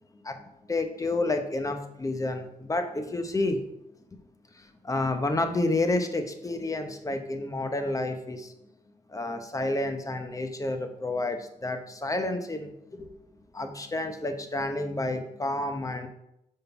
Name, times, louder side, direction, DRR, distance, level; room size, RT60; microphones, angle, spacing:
voice 1, 0.7-3.6 4.5-8.5 9.1-12.7 13.0-13.1 13.5-16.1, left 2 dB, 20° left, 6 dB, 0.9 m, -30 dB
5.3 x 3.9 x 5.7 m, 0.83 s
cardioid pair, 70°, 15 cm